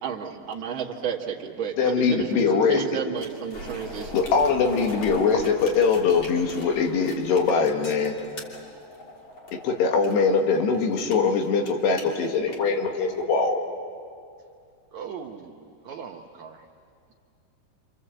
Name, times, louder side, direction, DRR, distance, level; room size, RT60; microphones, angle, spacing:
voice 1, 0.0-4.2, right 7 dB, 45° right, -1 dB, 1.7 m, -32 dB
voice 2, 1.8-2.8 4.1-8.2 9.6-13.6, left 5 dB, 75° left, 3 dB, 4.0 m, -22 dB
sound 1, 3.2-13.2, left 1 dB, 30° left, 3.3 m, -41 dB
voice 3, 14.9-15.5 15.8-16.6, right 7 dB, 85° right, 2 dB, 1.6 m, -38 dB
27.5 x 27.5 x 7.9 m, 2.3 s
omnidirectional pair, 4.9 m